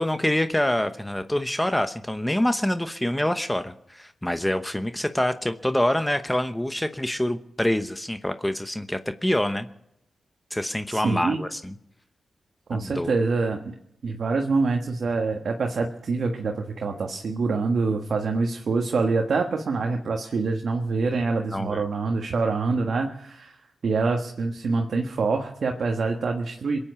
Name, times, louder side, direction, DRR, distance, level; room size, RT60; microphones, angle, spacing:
voice 1, 0.0-9.7 10.5-11.7 12.7-13.1 21.5-21.8, left 1 dB, 10° left, 9 dB, 1.0 m, -26 dB
voice 2, 10.9-11.4 12.7-13.7 14.0-23.6 23.8-26.8, right 4 dB, 70° right, 3 dB, 1.5 m, -25 dB
22.0 x 8.9 x 6.9 m, 0.76 s
cardioid pair, 55°, 0 cm